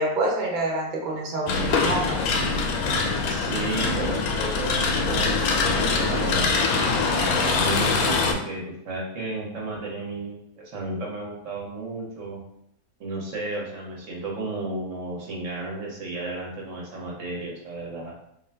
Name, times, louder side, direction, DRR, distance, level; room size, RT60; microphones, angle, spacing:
voice 1, 0.0-2.2, right 1 dB, 40° right, -2 dB, 0.9 m, -27 dB
sound 1, 1.5-8.3, left 4 dB, 90° left, 1.1 m, -23 dB
voice 2, 3.3-6.6 7.4-12.4 13.0-18.1, right 2 dB, 65° right, -2 dB, 1.1 m, -33 dB
3.7 x 2.4 x 3.3 m, 0.75 s
omnidirectional pair, 1.5 m